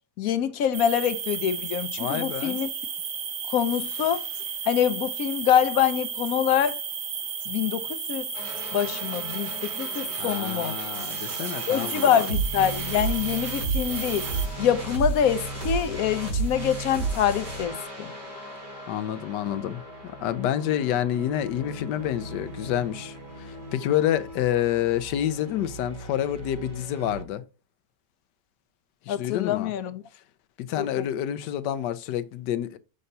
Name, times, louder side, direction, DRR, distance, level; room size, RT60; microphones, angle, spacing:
voice 1, 0.2-2.7 3.5-4.3 4.7-6.8 7.5-8.3 8.7-10.7 11.7-14.3 14.6-18.1 29.1-30.0 30.8-31.0, left 9 dB, 65° left, 0.9 m, -25 dB
sound 1, 0.7-14.5, right 7 dB, 55° right, 1.1 m, -33 dB
voice 2, 2.0-2.6 10.2-12.3 18.9-27.4 29.0-29.7 30.6-32.8, left 11 dB, 85° left, 1.3 m, -28 dB
sound 2, 8.3-27.2, right 3 dB, 85° right, 4.1 m, -34 dB
6.7 x 5.3 x 2.7 m
omnidirectional pair, 1.8 m